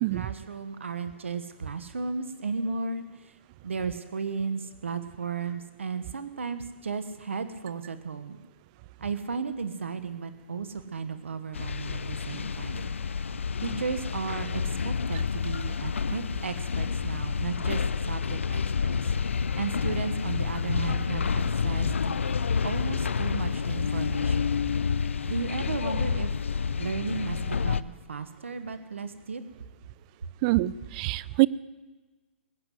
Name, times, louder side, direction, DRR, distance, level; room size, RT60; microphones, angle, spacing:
voice 1, 0.1-3.3 3.6-8.4 9.0-12.9 13.6-17.8 18.1-19.1 19.6-22.2 22.6-24.5 25.3-26.3 26.8-29.4, right 5 dB, 85° right, 10 dB, 1.2 m, -34 dB
sound 1, 11.5-27.8, left 6 dB, 85° left, 0.5 m, -29 dB
voice 2, 30.4-31.5, right 19 dB, 40° right, 20 dB, 0.5 m, -24 dB
21.0 x 8.2 x 8.0 m, 1.2 s
hypercardioid pair, 130°, 7 cm